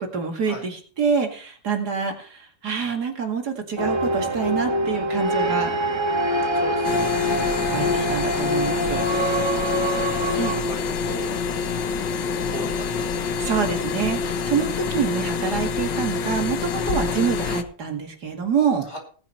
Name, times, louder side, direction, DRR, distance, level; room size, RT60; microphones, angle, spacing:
voice 1, 0.0-5.7 7.7-9.0 10.0-10.6 13.4-18.9, right 6 dB, 65° right, 3 dB, 2.6 m, -26 dB
sound 1, 3.8-10.6, right 1 dB, 15° right, 1.8 m, -24 dB
voice 2, 5.3-5.9 6.5-7.2 10.3-11.3 12.2-13.3 18.8-19.0, equal, 40° left, 0 dB, 5.4 m, -38 dB
sound 2, 6.8-17.6, left 5 dB, 90° left, 1.7 m, -26 dB
18.0 x 9.8 x 4.4 m, 0.41 s
omnidirectional pair, 1.9 m